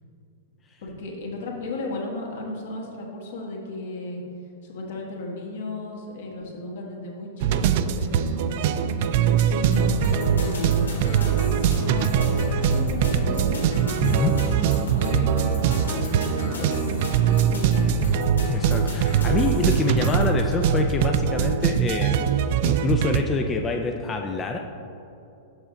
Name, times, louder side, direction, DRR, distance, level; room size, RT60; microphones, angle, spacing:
voice 1, 0.8-4.2 4.6-8.8 9.5-13.7 14.3-18.0 19.0-19.3, left 2 dB, 65° left, -1 dB, 1.4 m, -35 dB
sound 1, 7.4-23.2, right 8 dB, 55° right, 0.3 m, -22 dB
sound 2, 9.7-20.4, left 1 dB, 80° left, 1.3 m, -34 dB
voice 2, 14.0-14.3 18.5-24.6, left 4 dB, 25° left, 3 dB, 0.4 m, -26 dB
6.2 x 6.0 x 3.8 m, 2.8 s
hypercardioid pair, 105°, 0 cm